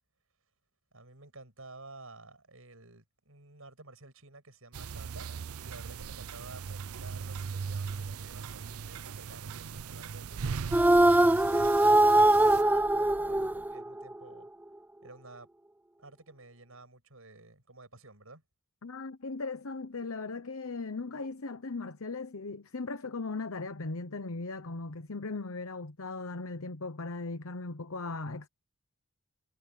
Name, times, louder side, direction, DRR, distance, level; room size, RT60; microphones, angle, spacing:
voice 1, 0.9-11.9 12.4-14.5 15.0-15.5 16.0-18.4, right 2 dB, 70° right, 7.7 m, -51 dB
sound 1, 4.7-12.6, right 5 dB, 85° right, 0.5 m, -39 dB
sound 2, 10.7-14.1, right 1 dB, 10° right, 0.3 m, -22 dB
voice 2, 18.8-28.5, left 3 dB, 75° left, 1.0 m, -38 dB
head